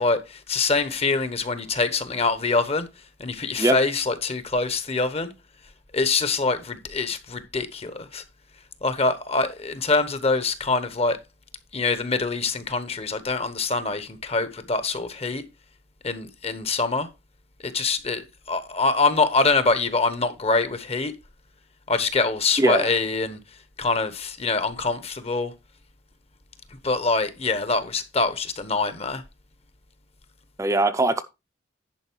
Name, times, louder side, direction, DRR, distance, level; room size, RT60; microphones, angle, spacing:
voice 1, 0.0-2.9 3.2-5.3 5.9-8.2 8.8-11.2 11.7-15.4 16.0-17.1 17.6-21.1 21.9-23.4 23.8-25.5 26.8-29.2, left 3 dB, 35° left, 1.0 m, -24 dB
voice 2, 22.6-22.9 30.6-31.2, right 2 dB, 15° right, 0.6 m, -21 dB
10.5 x 5.2 x 4.5 m
head